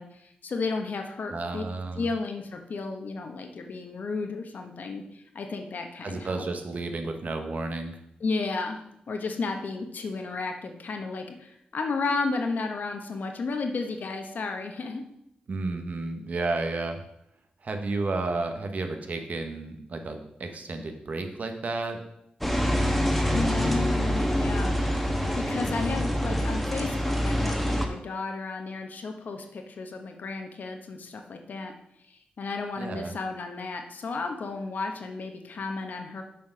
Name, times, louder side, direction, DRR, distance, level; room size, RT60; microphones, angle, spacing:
voice 1, 0.0-1.7 2.0-6.4 8.2-15.0 23.3-31.7 32.1-36.2, left 3 dB, 65° left, 5 dB, 1.2 m, -33 dB
voice 2, 1.3-2.1 6.0-8.0 15.5-17.0 17.6-22.0 26.2-26.5 32.8-33.1, right 3 dB, 55° right, 5 dB, 1.2 m, -32 dB
sound 1, 22.4-27.9, equal, ahead, 1.3 m, -26 dB
7.2 x 4.5 x 6.1 m, 0.79 s
cardioid pair, 70°, 3 cm